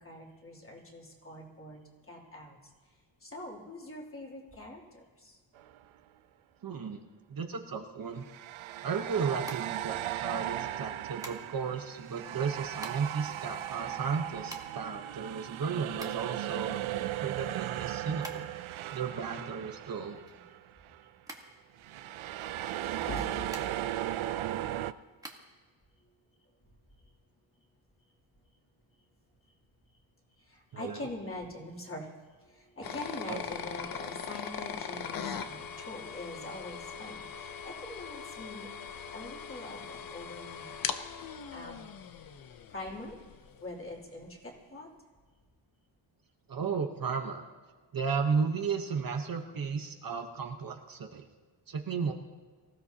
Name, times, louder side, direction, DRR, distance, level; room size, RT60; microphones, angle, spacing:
voice 1, 0.0-2.6 3.2-5.4 20.0-20.2 22.0-22.1 22.8-23.7 30.4-32.1 32.4-38.7 39.1-40.8 41.5-41.8 42.7-43.2 43.6-44.9, left 1 dB, 25° left, -2 dB, 2.9 m, -43 dB
sound 1, 5.6-5.8 8.2-20.6 20.9-21.1 21.8-24.9, right 13 dB, 80° right, 0.6 m, -37 dB
voice 2, 6.6-7.0 7.3-8.3 8.8-18.5 18.9-20.2 30.7-31.1 33.3-33.4 46.5-47.4 47.9-51.3 51.7-52.1, right 5 dB, 45° right, 3 dB, 1.0 m, -34 dB
sound 2, 9.4-10.3 11.2-11.8 12.4-13.2 13.5-13.6 13.8-16.5 16.9-18.8 19.0-20.9 21.2-22.2 23.0-24.0 24.4-25.4, right 1 dB, 5° right, 1.3 m, -48 dB
sound 3, 32.8-43.6, left 7 dB, 45° left, 0.7 m, -40 dB
24.5 x 16.0 x 2.8 m, 1.4 s
wide cardioid pair, 150°, 47 cm